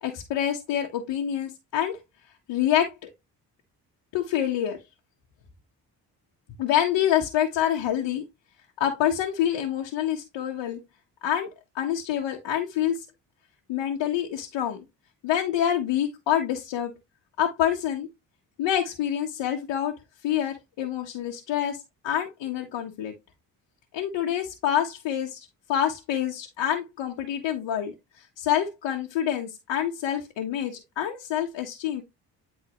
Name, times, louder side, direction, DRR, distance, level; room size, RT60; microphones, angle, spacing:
voice 1, 0.0-2.0 2.5-3.1 4.1-4.8 6.6-8.3 8.8-10.8 11.2-11.5 11.7-13.0 13.7-14.8 15.2-16.9 17.4-18.1 18.6-19.9 20.2-23.1 23.9-27.9 28.4-32.0, left 10 dB, 75° left, 1.5 m, -27 dB
9.8 x 3.9 x 3.1 m
supercardioid pair, 60°, 44 cm